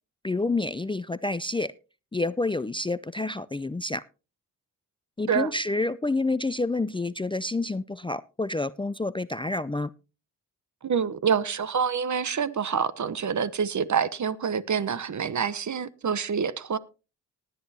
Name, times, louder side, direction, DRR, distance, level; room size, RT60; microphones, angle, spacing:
voice 1, 0.2-1.7 2.1-4.0 5.2-9.9, left 2 dB, 15° left, 0.5 m, -28 dB
voice 2, 10.8-16.8, right 7 dB, 45° right, 0.9 m, -27 dB
19.0 x 9.4 x 2.8 m
supercardioid pair, 40°, 40 cm